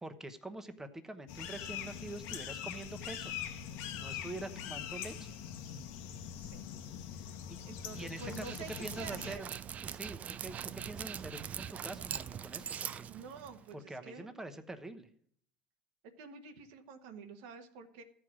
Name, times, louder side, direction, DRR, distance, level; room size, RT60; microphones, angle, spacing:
voice 1, 0.0-3.3 3.9-5.3 7.9-9.5 9.8-13.1 13.7-15.1, right 2 dB, 10° right, 9 dB, 1.0 m, -45 dB
sound 1, 1.3-9.4, left 9 dB, 70° left, 1.0 m, -43 dB
voice 2, 5.1-5.5 5.9-6.0 6.4-6.7 7.6-8.7 9.0-9.4 13.1-14.3 16.2-18.0, right 5 dB, 75° right, 7 dB, 1.2 m, -49 dB
Dog, 7.9-13.7, right 8 dB, 35° right, 0.4 m, -42 dB
14.0 x 4.8 x 6.1 m, 0.63 s
supercardioid pair, 105°, 4 cm